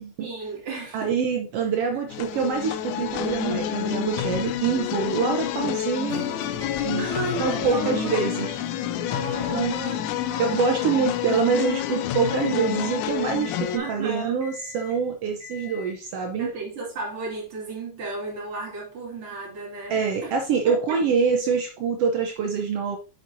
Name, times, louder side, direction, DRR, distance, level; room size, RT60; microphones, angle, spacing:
voice 1, 0.2-1.1 7.0-8.6 9.0-10.8 13.7-14.4 16.4-20.3 20.6-21.0, right 3 dB, 45° right, 3.0 m, -34 dB
voice 2, 0.9-6.3 6.8-7.1 7.4-8.6 9.5-10.0 10.4-16.5 19.9-23.0, right 6 dB, 75° right, 1.4 m, -25 dB
sound 1, 2.1-13.8, left 11 dB, 80° left, 2.0 m, -28 dB
Acoustic guitar / Strum, 6.1-11.3, left 2 dB, 30° left, 1.2 m, -45 dB
sound 2, 6.4-12.1 12.4-13.0 13.4-14.1 14.4-15.0 15.4-16.0, left 5 dB, 5° right, 1.6 m, -43 dB
7.5 x 6.3 x 2.6 m
omnidirectional pair, 3.5 m